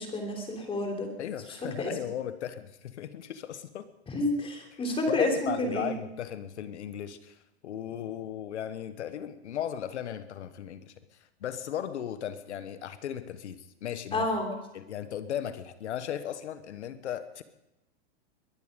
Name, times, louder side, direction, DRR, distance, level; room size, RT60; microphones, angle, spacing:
voice 1, 0.0-1.1 1.8-1.9 4.1-6.0 14.1-14.5, left 2 dB, 15° left, 3 dB, 3.5 m, -29 dB
voice 2, 1.2-3.9 5.1-7.4 7.6-10.9 11.4-14.3 14.7-17.4, left 10 dB, 90° left, 11 dB, 1.3 m, -36 dB
22.5 x 11.0 x 5.2 m, 0.93 s
supercardioid pair, 135°, 33 cm